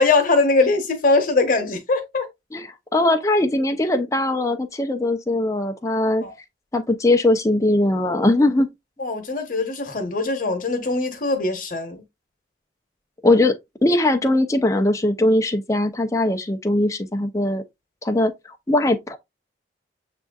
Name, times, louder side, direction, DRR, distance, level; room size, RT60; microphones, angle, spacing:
voice 1, 0.0-2.3 6.2-6.3 9.0-12.0, left 3 dB, 45° left, 1.0 m, -21 dB
voice 2, 2.5-6.2 6.7-8.7 13.2-17.6 18.0-18.3 18.7-19.2, left 1 dB, 15° left, 0.5 m, -20 dB
7.4 x 2.6 x 2.3 m
head